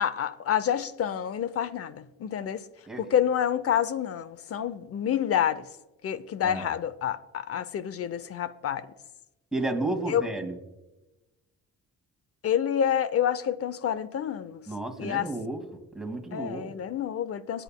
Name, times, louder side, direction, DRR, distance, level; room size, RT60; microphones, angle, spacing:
voice 1, 0.0-2.6 3.0-5.7 6.0-8.9 10.1-10.3 12.4-14.7 15.0-15.3 16.3-17.6, left 9 dB, 50° left, 0.7 m, -28 dB
voice 2, 9.5-10.5 14.7-15.6 15.9-16.7, right 2 dB, ahead, 2.0 m, -32 dB
21.5 x 9.0 x 2.2 m
cardioid pair, 90°, 30 cm